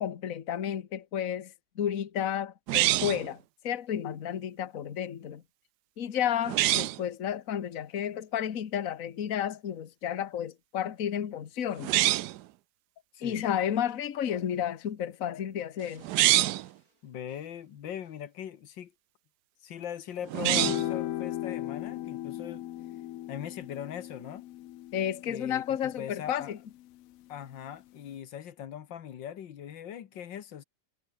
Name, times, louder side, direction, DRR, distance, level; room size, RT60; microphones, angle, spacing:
voice 1, 0.0-3.4 3.6-5.4 6.0-11.9 13.2-16.0 24.9-26.6, left 9 dB, 50° left, 1.6 m, -32 dB
sound 1, 2.7-3.3 6.4-7.0 11.8-12.4 16.0-16.7 20.3-20.9, right 15 dB, 70° right, 1.1 m, -25 dB
voice 2, 13.1-13.5 17.0-18.9 19.6-22.7 23.3-24.4 25.2-26.5 27.3-30.6, left 9 dB, 85° left, 2.0 m, -40 dB
sound 2, 15.8-18.3 18.8-18.9, right 2 dB, 55° right, 7.4 m, -62 dB
sound 3, 20.4-27.0, left 14 dB, 70° left, 0.8 m, -37 dB
omnidirectional pair, 1.9 m